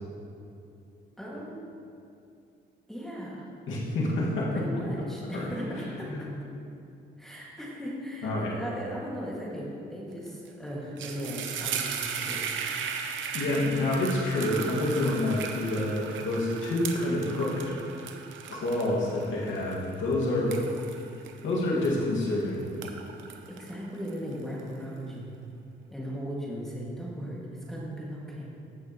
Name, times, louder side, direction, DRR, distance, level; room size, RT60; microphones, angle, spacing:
voice 1, 1.2-1.6 2.9-3.5 4.5-6.3 7.2-12.4 12.8-13.1 23.5-25.3 25.9-28.5, equal, ahead, -6 dB, 1.9 m, -37 dB
voice 2, 3.7-4.5 5.3-5.5 6.0-6.2 8.2-8.5 13.3-17.6 18.5-20.6 21.4-22.6, left 1 dB, 75° left, -4 dB, 1.9 m, -28 dB
sound 1, 10.3-10.5 10.8-22.3 22.7-24.6, right 7 dB, 75° right, 0.8 m, -37 dB
15.0 x 6.0 x 3.0 m, 2.6 s
cardioid pair, 90°, 20 cm